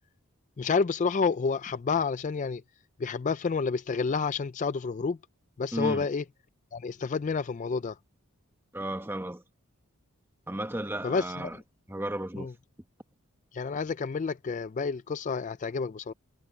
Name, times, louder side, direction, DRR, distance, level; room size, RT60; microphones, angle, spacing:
voice 1, 0.6-2.6 3.0-5.2 5.6-6.2 6.7-8.0 11.0-11.3 12.4-12.5 13.5-16.1, left 5 dB, 35° left, 0.3 m, -29 dB
voice 2, 5.7-6.1 8.7-9.4 10.5-11.6 11.9-12.5, right 1 dB, 10° right, 1.1 m, -34 dB
head